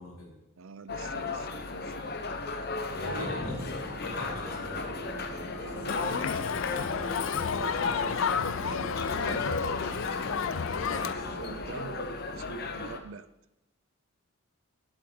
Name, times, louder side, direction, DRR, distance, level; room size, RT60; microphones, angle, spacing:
voice 1, 0.0-0.4 2.9-3.7 4.0-5.0 10.7-11.2, left 1 dB, 90° left, -2 dB, 3.6 m, -41 dB
voice 2, 0.6-2.0 3.0-3.4 5.6-6.3 7.3-10.0 10.8-13.3, right 5 dB, 65° right, 14 dB, 0.5 m, -44 dB
sound 1, 0.9-13.0, left 3 dB, 45° left, 0.8 m, -35 dB
sound 2, 3.0-11.7, equal, 10° left, 2.7 m, -42 dB
Crowd, 5.9-11.1, left 7 dB, 65° left, 0.4 m, -31 dB
11.5 x 9.8 x 3.9 m, 0.92 s
head